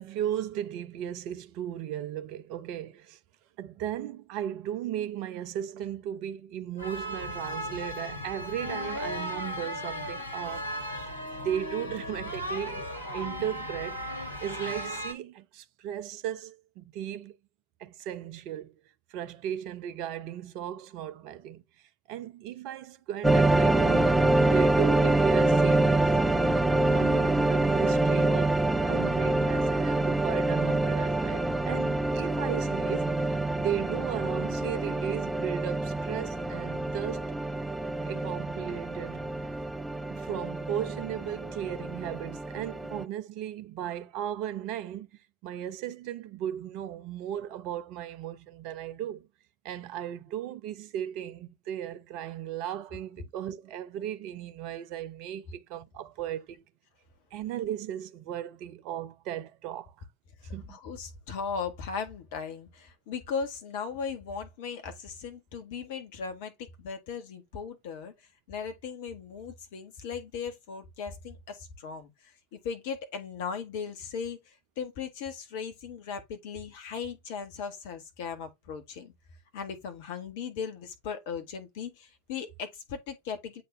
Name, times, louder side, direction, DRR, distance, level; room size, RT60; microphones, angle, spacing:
voice 1, 0.0-3.2 3.6-10.7 11.4-12.9 13.1-14.0 14.4-17.4 17.8-18.7 19.1-21.6 22.1-26.1 26.8-37.4 38.0-39.2 40.1-45.1 45.4-49.3 49.6-56.6 57.3-59.9 60.5-60.8, right 10 dB, 40° right, 0.7 m, -36 dB
sound 1, 6.8-15.1, equal, 85° left, 1.8 m, -36 dB
sound 2, 23.2-43.1, right 2 dB, 5° right, 0.4 m, -26 dB
voice 2, 60.4-68.1 68.5-79.1 79.5-83.6, left 6 dB, 50° left, 1.6 m, -38 dB
7.7 x 4.1 x 3.4 m
figure-of-eight pair, 90°, 0 cm